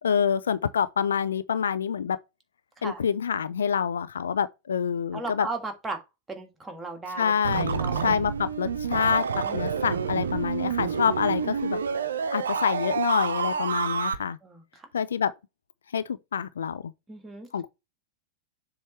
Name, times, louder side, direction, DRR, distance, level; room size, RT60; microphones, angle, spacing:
voice 1, 0.0-2.2 2.8-5.5 7.2-11.8 12.3-14.4 14.9-15.3 15.9-16.9 17.5-17.7, left 7 dB, 70° left, 0.4 m, -27 dB
voice 2, 5.1-6.0 6.3-7.3 7.8-8.1 9.3-9.6 14.4-14.9 17.1-17.5, right 3 dB, 15° right, 1.6 m, -36 dB
sound 1, 7.4-14.2, right 6 dB, 70° right, 0.6 m, -28 dB
7.1 x 3.1 x 4.4 m
figure-of-eight pair, 90°, 0 cm